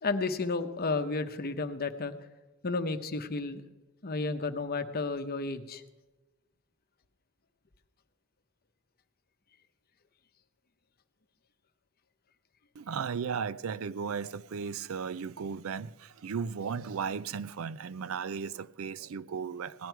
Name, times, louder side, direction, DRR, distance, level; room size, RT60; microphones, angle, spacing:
voice 1, 0.0-2.1 2.6-3.6 4.0-5.8, left 3 dB, 45° left, 0.8 m, -32 dB
voice 2, 12.7-19.9, right 6 dB, 75° right, 0.4 m, -35 dB
17.5 x 11.0 x 4.6 m
head